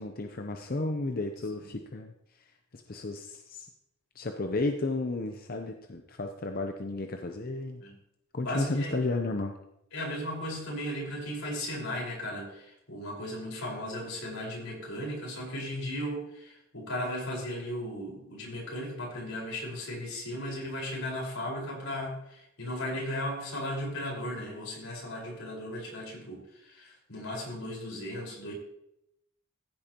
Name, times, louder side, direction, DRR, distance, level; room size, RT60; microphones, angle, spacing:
voice 1, 0.0-2.5 2.7-3.7 4.1-7.8 8.3-9.5, left 2 dB, 45° left, 5 dB, 0.7 m, -33 dB
voice 2, 8.4-9.0 9.9-28.5, left 1 dB, 85° left, -3 dB, 4.8 m, -36 dB
15.0 x 8.7 x 2.9 m, 0.82 s
head